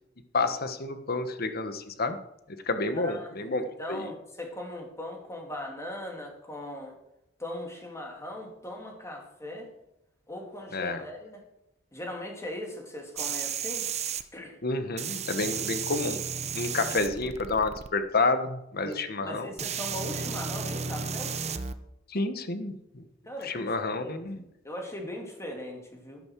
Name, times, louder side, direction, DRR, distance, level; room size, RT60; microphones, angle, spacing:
voice 1, 0.3-2.2 2.6-3.6 3.9-4.0 10.7-11.0 14.6-16.2 16.5-19.5 22.1-23.0 23.4-24.4, left 3 dB, 55° left, 9 dB, 1.2 m, -29 dB
voice 2, 2.9-6.9 7.4-9.7 10.3-11.4 11.9-13.9 14.3-14.6 18.8-21.3 23.3-26.2, left 1 dB, 15° left, 1 dB, 2.8 m, -39 dB
sound 1, 13.2-14.2 15.0-17.9 18.9-19.0 19.6-21.7 23.4-23.5, right 6 dB, 35° right, 0.8 m, -33 dB
12.0 x 11.5 x 4.7 m, 0.84 s
head